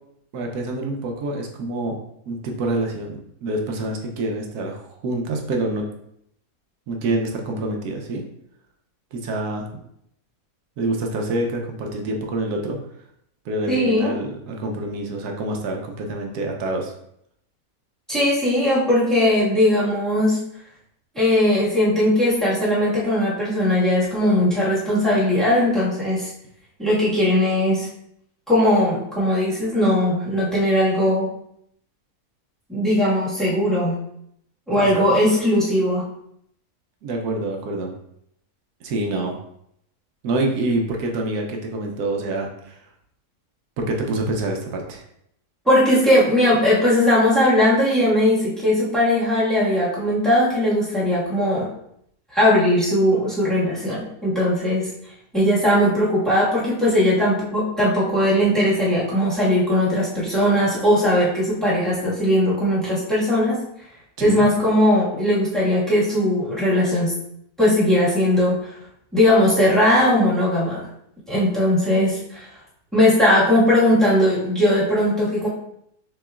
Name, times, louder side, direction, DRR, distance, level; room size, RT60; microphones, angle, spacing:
voice 1, 0.3-2.0 2.3-5.9 6.9-8.2 9.1-9.7 10.8-12.8 13.4-16.9 34.7-35.0 37.0-37.9 38.8-39.4 40.2-42.8 43.8-45.0 64.2-64.5, right 2 dB, 90° right, 2 dB, 1.3 m, -26 dB
voice 2, 13.7-14.2 18.1-20.4 21.1-26.3 26.8-27.9 28.5-31.3 32.7-34.0 34.7-36.1 45.6-51.7 52.3-54.9 55.3-63.6 64.2-67.1 67.6-68.7 69.1-70.8 71.3-72.5 72.9-75.5, left 1 dB, ahead, -8 dB, 1.5 m, -19 dB
6.5 x 3.0 x 2.4 m, 0.73 s
omnidirectional pair, 1.6 m